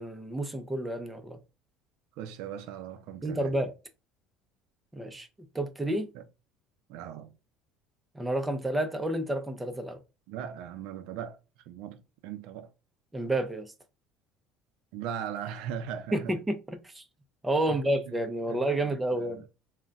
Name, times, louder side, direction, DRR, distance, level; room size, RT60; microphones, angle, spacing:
voice 1, 0.0-1.4 3.2-3.7 4.9-5.3 5.5-6.1 8.2-10.0 13.1-13.7 16.1-16.6 16.8-17.0 17.4-19.4, right 1 dB, 10° right, 0.4 m, -30 dB
voice 2, 2.2-3.6 6.1-6.3 6.9-7.4 10.3-11.4 11.6-12.7 14.9-16.4 17.7-18.2 18.5-19.5, right 8 dB, 75° right, 0.4 m, -39 dB
2.3 x 2.1 x 3.9 m
cardioid pair, 140°, 0 cm